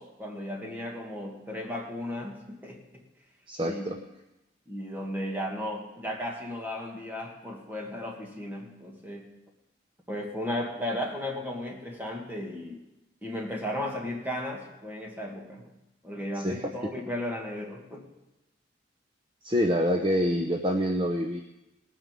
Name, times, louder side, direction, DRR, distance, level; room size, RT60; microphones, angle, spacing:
voice 1, 0.0-2.9 3.6-4.0 4.7-9.3 10.1-12.8 13.2-15.7 16.0-18.1, left 1 dB, 10° right, 0 dB, 1.9 m, -35 dB
voice 2, 3.5-4.0 16.3-16.9 19.4-21.4, equal, 25° right, 4 dB, 0.7 m, -27 dB
18.5 x 9.3 x 5.3 m, 0.95 s
head